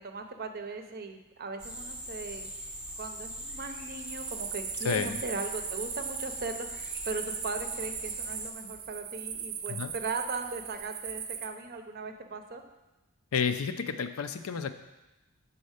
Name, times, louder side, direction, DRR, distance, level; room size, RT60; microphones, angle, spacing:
voice 1, 0.0-2.5 3.0-12.6, right 3 dB, 45° right, 6 dB, 0.6 m, -38 dB
sound 1, 1.6-8.5, equal, 5° right, 0.7 m, -41 dB
sound 2, 4.1-11.5, right 8 dB, 80° right, 0.6 m, -39 dB
voice 2, 4.8-5.2 9.7-9.9 13.3-14.7, left 6 dB, 70° left, 9 dB, 0.5 m, -31 dB
6.3 x 4.2 x 6.4 m, 1.0 s
head